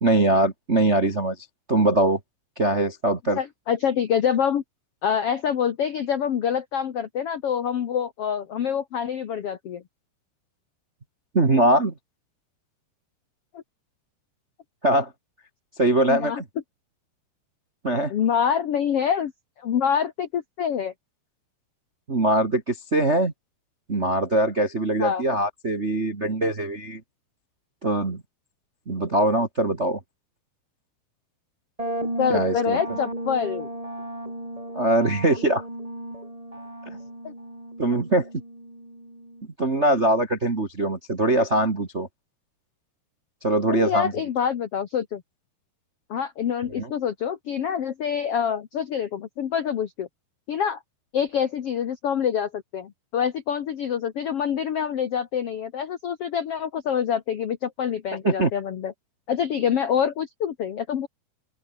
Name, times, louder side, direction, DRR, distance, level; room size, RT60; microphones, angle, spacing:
voice 1, 0.0-1.4 1.7-2.2 2.6-3.4 11.3-11.9 14.8-15.1 15.8-16.4 17.8-18.1 22.1-23.3 23.9-27.0 27.8-28.2 28.9-30.0 32.3-32.8 34.7-35.6 36.9-37.0 37.8-38.3 39.6-42.1 43.4-44.1 46.7-46.9 58.2-58.5, right 1 dB, 40° right, 0.9 m, -22 dB
voice 2, 3.3-4.6 5.0-9.8 13.5-13.6 16.1-16.4 18.1-19.3 19.6-20.9 25.0-25.2 32.2-33.7 37.2-37.3 43.7-45.2 46.1-50.1 50.5-50.8 51.1-58.9 59.3-61.1, left 8 dB, 70° left, 1.4 m, -26 dB
sound 1, 31.8-39.4, right 1 dB, 10° right, 5.2 m, -34 dB
open air
omnidirectional pair, 4.8 m